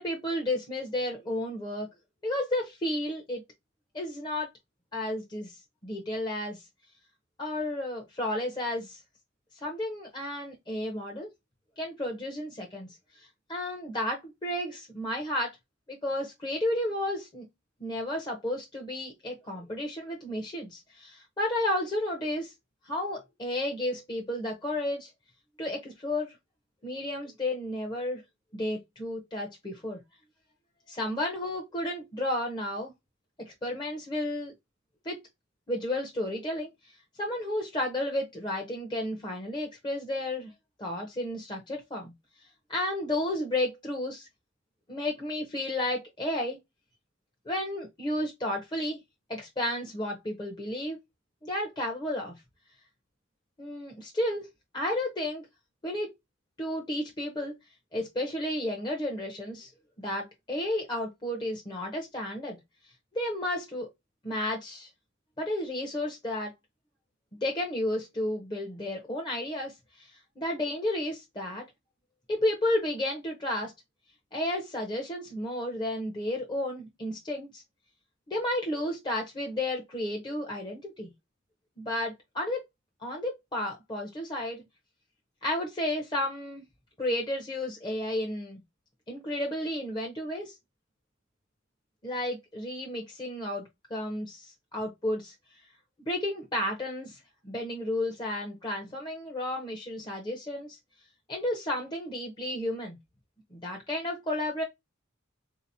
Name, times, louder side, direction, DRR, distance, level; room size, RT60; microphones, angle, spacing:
voice 1, 0.0-1.9 2.2-3.4 3.9-4.5 4.9-5.5 5.8-6.6 7.4-9.0 9.6-11.3 11.8-12.9 13.1-15.6 15.9-17.5 17.8-22.5 22.8-25.1 25.6-26.3 26.8-28.2 28.5-30.0 30.9-32.9 33.5-34.5 35.0-35.2 35.7-36.7 37.2-40.5 40.8-42.1 42.7-44.3 44.9-46.6 47.5-49.0 49.3-51.0 51.4-52.3 53.6-54.5 54.7-55.5 55.8-56.1 56.6-57.6 57.9-59.7 60.0-62.6 63.1-63.9 64.2-64.9 65.4-66.5 67.3-71.6 72.3-73.7 74.3-77.6 78.3-81.1 81.8-82.6 83.0-84.6 85.4-86.6 87.0-88.6 89.1-90.5 92.0-93.6 93.9-95.3 96.1-97.2 97.4-100.8 101.3-103.0 103.5-104.6, left 1 dB, 25° left, 0.8 m, -32 dB
3.9 x 2.8 x 2.6 m
head